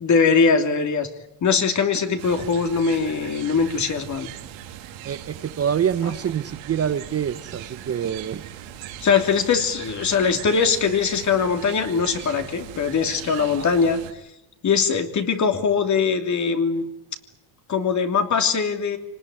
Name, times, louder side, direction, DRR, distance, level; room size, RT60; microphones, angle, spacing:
voice 1, 0.0-1.1 1.4-4.3 9.0-14.0 14.6-16.8 17.7-19.0, left 5 dB, 35° left, 6 dB, 3.0 m, -21 dB
sound 1, 2.2-14.1, right 11 dB, 75° right, 3.0 m, -39 dB
voice 2, 5.0-8.4 13.4-13.7, right 8 dB, 30° right, 12 dB, 0.9 m, -26 dB
26.5 x 19.5 x 9.5 m, 0.90 s
cardioid pair, 115°, 48 cm